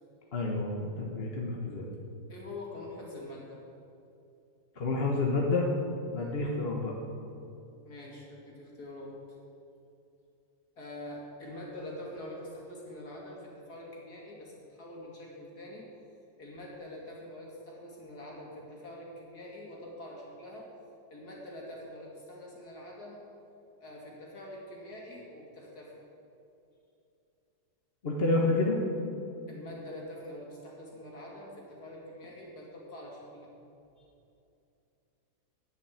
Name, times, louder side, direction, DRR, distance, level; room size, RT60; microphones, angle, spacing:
voice 1, 0.3-1.9 4.8-5.7 6.1-6.9 28.0-28.8, left 2 dB, 35° left, -1 dB, 1.3 m, -29 dB
voice 2, 2.3-3.6 6.2-6.4 7.8-9.1 10.8-15.9 16.4-20.7 21.1-23.2 23.8-26.0 29.5-33.6 34.0-34.1, left 1 dB, 55° left, -3 dB, 3.2 m, -45 dB
9.8 x 9.2 x 8.5 m, 2.7 s
omnidirectional pair, 2.1 m